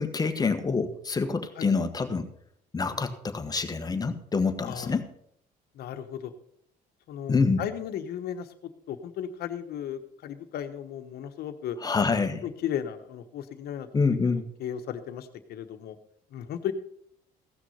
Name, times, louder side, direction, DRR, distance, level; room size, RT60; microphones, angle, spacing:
voice 1, 0.0-2.3 2.7-5.1 7.3-7.6 11.8-12.4 13.9-14.5, left 4 dB, 20° left, 7 dB, 1.3 m, -26 dB
voice 2, 4.6-5.0 5.7-6.3 7.1-8.5 8.9-11.8 12.4-13.9 14.6-16.0 16.3-16.7, left 9 dB, 70° left, 8 dB, 1.2 m, -35 dB
16.0 x 6.2 x 5.7 m, 0.71 s
cardioid pair, 110°, 17 cm